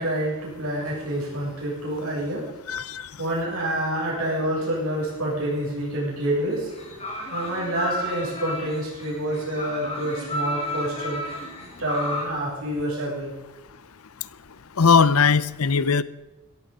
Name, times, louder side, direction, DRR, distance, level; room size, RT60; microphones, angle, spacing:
voice 1, 0.0-2.5 3.2-6.7 7.3-13.3, right 1 dB, 80° right, -5 dB, 7.4 m, -28 dB
voice 2, 2.7-3.0 14.8-16.0, left 5 dB, 85° left, 17 dB, 0.7 m, -19 dB
sound 1, 6.5-12.3, left 1 dB, 30° left, 3.3 m, -32 dB
16.5 x 15.0 x 5.5 m, 1.1 s
head